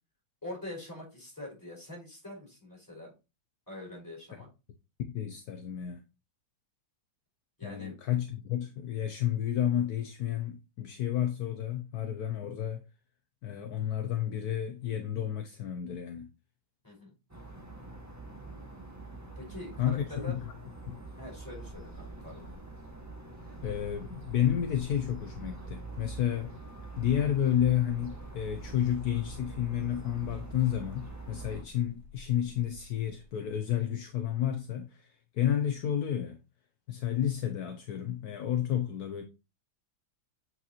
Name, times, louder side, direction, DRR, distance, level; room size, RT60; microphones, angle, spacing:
voice 1, 0.4-3.1 3.7-4.5 7.6-7.9 16.8-17.1 19.3-20.4 21.2-22.5, left 1 dB, 10° left, 4.8 m, -44 dB
voice 2, 5.1-6.0 7.6-12.8 13.4-16.3 19.8-20.4 20.9-21.0 23.6-26.5 27.0-36.4 36.9-39.2, left 10 dB, 65° left, 1.0 m, -31 dB
sound 1, 17.3-31.6, right 2 dB, 10° right, 1.3 m, -45 dB
sound 2, 21.6-33.5, equal, 45° right, 1.8 m, -54 dB
8.2 x 5.7 x 3.0 m
omnidirectional pair, 2.1 m